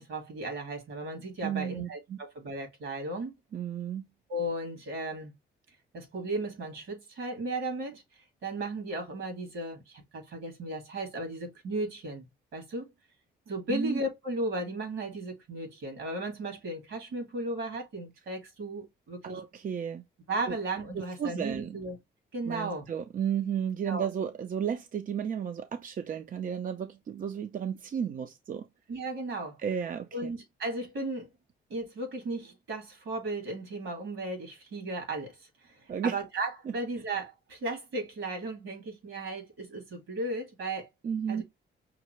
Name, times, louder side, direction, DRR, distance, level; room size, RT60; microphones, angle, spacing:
voice 1, 0.0-3.3 4.3-5.3 5.9-8.0 8.4-12.3 12.5-12.9 13.5-19.4 20.3-22.0 22.3-22.9 23.9-24.1 28.9-29.6 30.1-31.3 31.7-35.4 35.6-40.9 41.3-41.4, right 2 dB, 75° right, 2.3 m, -35 dB
voice 2, 1.4-2.2 3.5-4.1 13.7-14.0 19.2-20.0 20.5-20.6 20.9-21.8 22.5-28.7 29.6-30.3 35.9-36.2 36.7-36.8 41.0-41.4, right 8 dB, 45° right, 0.5 m, -33 dB
5.7 x 2.1 x 3.1 m
cardioid pair, 90°, 20 cm